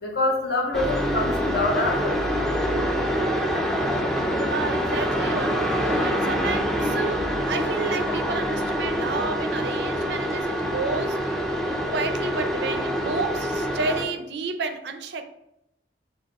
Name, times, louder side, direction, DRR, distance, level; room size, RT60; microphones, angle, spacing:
voice 1, 0.0-2.2, left 2 dB, 60° left, 0 dB, 0.9 m, -25 dB
sound 1, 0.7-14.0, equal, ahead, 0.4 m, -25 dB
voice 2, 4.5-11.3 11.6-15.2, right 4 dB, 65° right, 7 dB, 0.4 m, -31 dB
4.5 x 2.3 x 4.1 m, 0.85 s
head